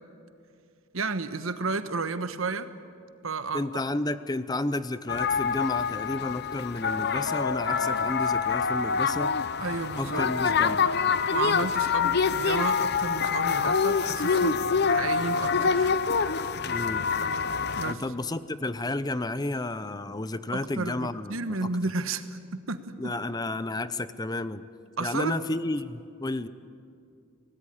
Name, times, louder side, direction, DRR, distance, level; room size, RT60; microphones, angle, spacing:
voice 1, 0.9-2.7 3.2-3.6 9.6-10.3 11.3-15.9 17.8-18.0 20.5-23.1 25.0-25.4, right 3 dB, 80° right, 11 dB, 1.3 m, -32 dB
voice 2, 3.5-9.3 10.0-10.9 16.6-17.1 17.8-21.7 23.0-24.7 25.0-26.5, left 2 dB, 20° left, 14 dB, 0.6 m, -31 dB
sound 1, 5.1-17.9, left 5 dB, 55° left, 0.8 m, -26 dB
25.0 x 18.5 x 9.9 m, 2.5 s
head